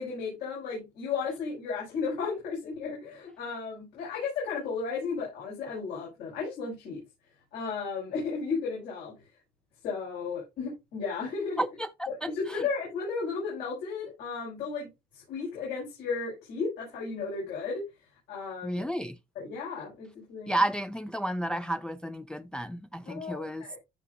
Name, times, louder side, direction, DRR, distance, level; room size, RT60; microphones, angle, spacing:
voice 1, 0.0-7.0 7.5-9.3 9.8-11.6 12.1-14.9 15.1-17.8 18.3-18.8 19.3-20.5 23.1-23.8, left 5 dB, 85° left, 5.6 m, -34 dB
voice 2, 11.6-12.3 18.6-19.2 20.5-23.6, right 1 dB, 5° left, 0.4 m, -31 dB
14.5 x 4.9 x 2.4 m
cardioid pair, 110°, 17 cm